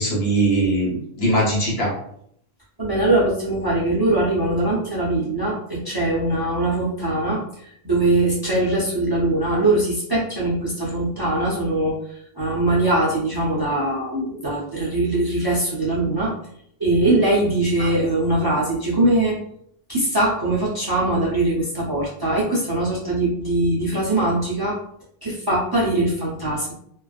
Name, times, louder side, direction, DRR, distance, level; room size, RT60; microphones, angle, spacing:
voice 1, 0.0-1.9 17.8-17.9, right 1 dB, 70° left, -4 dB, 1.1 m, -21 dB
voice 2, 2.8-16.4 16.8-19.4 19.9-24.8 25.2-26.7, right 2 dB, 30° right, -7 dB, 0.4 m, -21 dB
2.4 x 2.2 x 2.4 m, 0.69 s
omnidirectional pair, 1.1 m